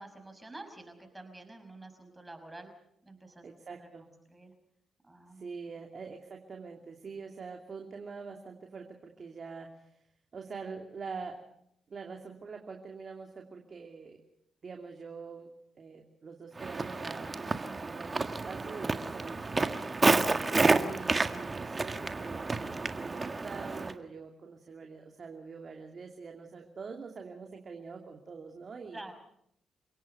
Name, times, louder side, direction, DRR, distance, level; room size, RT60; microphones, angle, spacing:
voice 1, 0.0-2.7 3.0-4.5 5.0-5.5 5.8-5.9 28.9-29.1, right 2 dB, 20° right, 6 dB, 5.8 m, -49 dB
voice 2, 3.4-4.1 5.3-10.0 10.3-11.4 11.9-14.2 14.6-20.0 20.5-29.0, right 5 dB, 50° right, 3 dB, 2.6 m, -45 dB
Walk footsteps, 16.6-23.9, right 3 dB, 35° right, 1.7 m, -30 dB
28.0 x 17.5 x 6.8 m, 0.74 s
hypercardioid pair, 45°, 0 cm